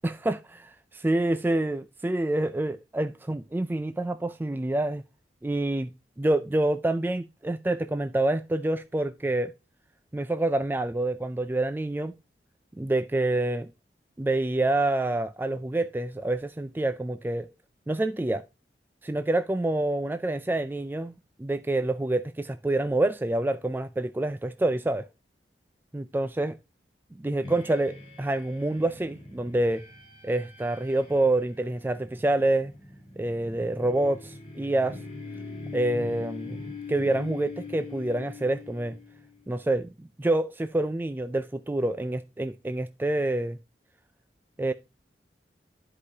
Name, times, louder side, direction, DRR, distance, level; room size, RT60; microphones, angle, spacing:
voice 1, 0.0-5.0 5.4-5.9 6.2-9.5 10.1-12.1 12.8-13.7 14.2-17.5 17.9-18.4 19.0-21.1 21.4-25.1 25.9-26.6 27.2-29.9 30.2-32.7 33.2-35.0 35.7-36.6 36.9-39.0 39.5-39.9 40.2-43.6 44.6-44.7, right 2 dB, 10° right, 0.3 m, -27 dB
sound 1, 27.4-39.5, left 3 dB, 30° left, 4.6 m, -42 dB
13.0 x 4.9 x 2.7 m
head